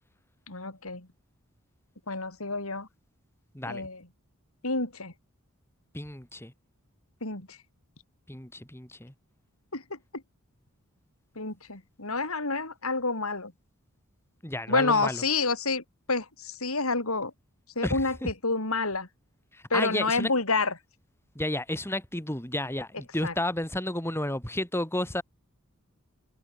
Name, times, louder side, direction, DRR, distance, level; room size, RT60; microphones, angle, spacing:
voice 1, 0.5-1.1 2.1-2.9 3.6-4.0 4.6-5.1 7.2-7.6 9.7-10.0 11.4-13.5 14.7-17.3 17.8-19.1 19.7-20.7 23.2-23.3, left 3 dB, 70° left, 5.6 m, -28 dB
voice 2, 3.5-3.9 5.9-6.5 8.3-9.1 14.4-15.2 17.8-18.3 19.5-20.3 21.4-25.2, left 1 dB, 10° left, 4.1 m, -32 dB
head